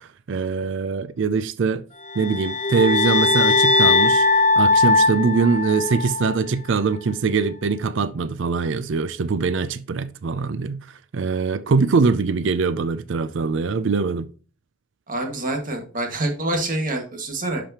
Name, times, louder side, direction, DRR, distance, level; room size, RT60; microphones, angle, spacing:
voice 1, 0.0-1.8 2.2-4.3 4.6-10.9 11.1-14.3, right 4 dB, 65° right, 0.4 m, -22 dB
sound 1, 2.1-6.4, left 3 dB, 35° left, 0.7 m, -19 dB
voice 2, 15.1-17.6, right 2 dB, 40° right, 1.9 m, -26 dB
11.0 x 5.1 x 2.9 m
head